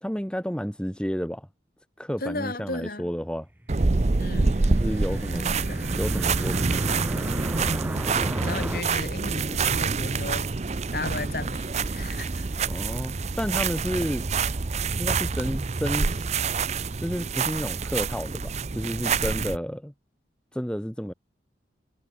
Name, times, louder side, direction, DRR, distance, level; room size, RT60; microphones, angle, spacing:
voice 1, 0.0-1.5 2.0-3.5 4.7-5.6 5.9-6.7 12.7-14.3 15.0-16.4 17.0-19.9 20.5-21.1, equal, 5° left, 1.7 m, -31 dB
voice 2, 2.2-3.1 4.2-4.6 5.4-5.9 8.4-10.5 10.9-12.5, left 2 dB, 55° left, 5.2 m, -35 dB
sound 1, 3.6-8.8, right 1 dB, 10° right, 1.5 m, -35 dB
sound 2, 3.7-19.6, right 4 dB, 40° right, 0.6 m, -27 dB
head